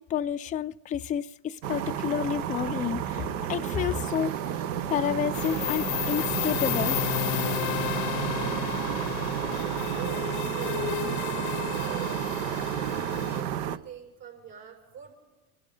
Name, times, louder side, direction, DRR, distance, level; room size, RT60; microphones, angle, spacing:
voice 1, 0.0-4.6 4.9-7.0, left 9 dB, 20° left, 0.4 m, -30 dB
sound 1, 1.6-13.8, right 9 dB, 80° right, 0.9 m, -31 dB
sound 2, 5.3-13.4, left 19 dB, 70° left, 0.6 m, -33 dB
voice 2, 8.3-8.6 9.3-15.1, right 9 dB, 65° right, 6.7 m, -45 dB
28.0 x 12.0 x 3.9 m
hypercardioid pair, 90°, 37 cm